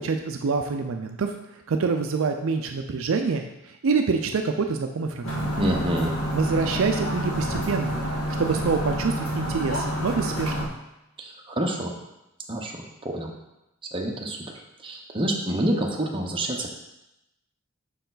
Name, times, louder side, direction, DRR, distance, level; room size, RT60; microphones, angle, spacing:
voice 1, 0.0-1.4 1.7-5.5 6.3-7.9 8.4-10.5, right 4 dB, 70° right, 5 dB, 0.4 m, -26 dB
sound 1, 5.2-10.7, equal, 80° left, 1.7 m, -28 dB
voice 2, 5.6-6.1 11.2-11.9 12.5-13.4 13.9-14.4 14.8-16.7, right 1 dB, 25° right, 1 dB, 0.8 m, -27 dB
5.6 x 4.5 x 3.9 m, 0.91 s
head